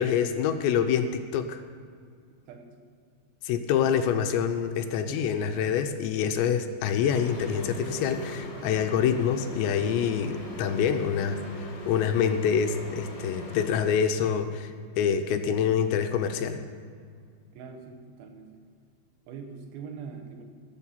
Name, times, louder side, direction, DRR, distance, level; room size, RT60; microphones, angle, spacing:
voice 1, 0.0-1.6 3.4-16.6, left 7 dB, 80° left, 7 dB, 2.8 m, -26 dB
sound 1, 7.1-13.7, equal, 45° left, 2.4 m, -39 dB
voice 2, 17.5-18.6 19.3-20.4, right 6 dB, 80° right, 4 dB, 3.5 m, -42 dB
17.0 x 7.1 x 5.7 m, 2.2 s
omnidirectional pair, 5.2 m